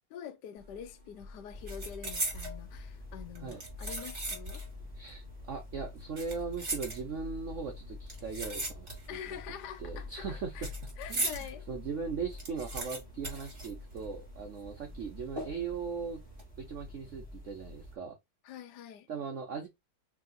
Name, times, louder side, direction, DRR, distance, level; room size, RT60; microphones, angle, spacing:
voice 1, 0.1-4.6 9.1-10.7 11.0-11.6 18.4-19.1, left 9 dB, 70° left, 1.1 m, -45 dB
sound 1, 0.6-0.9 1.2-2.6 3.3-4.7 5.0-5.1 6.0-7.4 8.1-9.3 9.5-11.5 11.9-12.0 12.2-14.3 14.6-14.7 15.4-15.8 16.2-16.4, right 2 dB, 25° right, 1.6 m, -38 dB
sound 2, 1.5-18.0, left 2 dB, 5° left, 1.3 m, -47 dB
voice 2, 4.9-9.4 9.8-10.7 11.1-16.2 16.6-18.2 19.1-19.7, right 5 dB, 85° right, 0.6 m, -39 dB
3.5 x 2.7 x 3.8 m
omnidirectional pair, 2.3 m